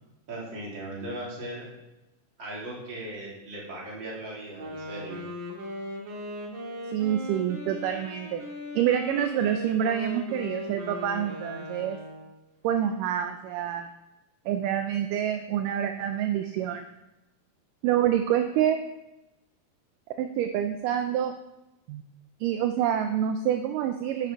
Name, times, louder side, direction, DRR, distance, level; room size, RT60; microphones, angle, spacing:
voice 1, 0.3-1.7 2.4-5.2, right 1 dB, 35° right, -5 dB, 3.6 m, -38 dB
Wind instrument woodwind instrument, 4.5-12.4, left 1 dB, 60° right, 3.1 m, -38 dB
voice 2, 6.9-8.4 8.8-12.0 12.6-13.9 14.5-16.9 17.8-18.8 20.2-21.3 21.9-22.0 22.4-24.3, right 10 dB, 80° right, 6 dB, 2.2 m, -27 dB
10.0 x 8.6 x 4.6 m, 0.93 s
omnidirectional pair, 4.0 m